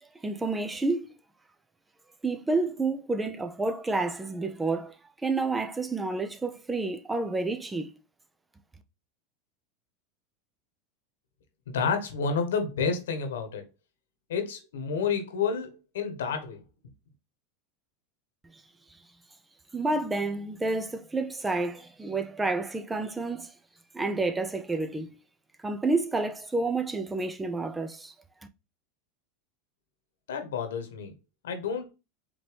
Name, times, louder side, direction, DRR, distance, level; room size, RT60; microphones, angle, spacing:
voice 1, 0.2-1.1 2.2-4.9 5.2-7.9 19.7-23.5 23.9-25.1 25.6-28.1, right 3 dB, 15° right, 0.7 m, -29 dB
voice 2, 11.7-13.6 14.3-16.6 30.3-31.1 31.4-31.9, left 5 dB, 85° left, 1.4 m, -30 dB
5.1 x 3.1 x 3.4 m
hypercardioid pair, 105°, 0 cm